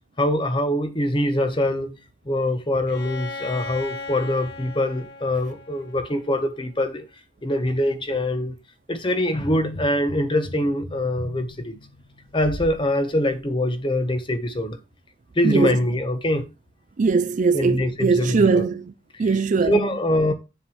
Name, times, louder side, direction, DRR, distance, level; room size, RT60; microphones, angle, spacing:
voice 1, 0.2-2.0 2.3-7.0 7.4-8.6 8.9-11.8 12.3-14.8 15.3-16.5 17.5-18.7 19.1-19.2 19.7-20.3, left 1 dB, 25° left, 1.1 m, -23 dB
Bowed string instrument, 2.9-6.6, left 3 dB, 60° left, 1.0 m, -37 dB
sound 1, 9.4-12.8 13.3-13.4, left 1 dB, 90° left, 2.0 m, -37 dB
voice 2, 15.4-15.8 17.0-18.9 19.2-19.9, right 4 dB, 40° right, 0.4 m, -20 dB
7.0 x 4.8 x 5.7 m
head